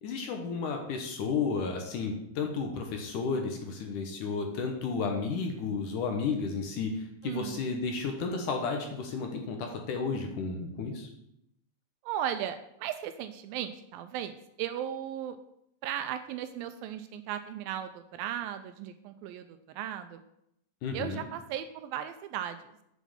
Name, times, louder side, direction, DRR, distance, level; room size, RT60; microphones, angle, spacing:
voice 1, 0.0-11.1 20.8-21.2, left 4 dB, 65° left, 3 dB, 2.3 m, -32 dB
voice 2, 7.2-7.6 12.0-15.4 15.8-20.2 20.9-22.6, right 10 dB, 80° right, 9 dB, 2.2 m, -36 dB
8.2 x 6.2 x 7.0 m, 0.79 s
omnidirectional pair, 4.4 m